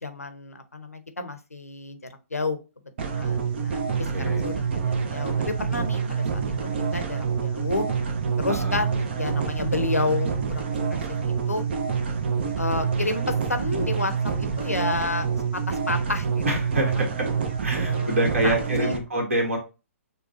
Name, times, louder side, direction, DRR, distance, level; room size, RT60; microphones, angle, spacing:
voice 1, 0.0-2.0 2.3-2.6 3.0-7.8 8.4-10.6 10.9-11.6 12.6-15.3 15.5-16.4 16.7-16.8 17.8-18.5 18.8-18.9, left 3 dB, 80° left, 8 dB, 0.7 m, -30 dB
sound 1, 3.0-19.0, right 6 dB, 45° right, 0.6 m, -27 dB
voice 2, 4.1-4.4 8.5-8.8 16.4-17.3 17.6-19.6, right 1 dB, 60° right, 2 dB, 1.6 m, -26 dB
6.4 x 2.3 x 2.7 m, 0.30 s
figure-of-eight pair, 125°, 8 cm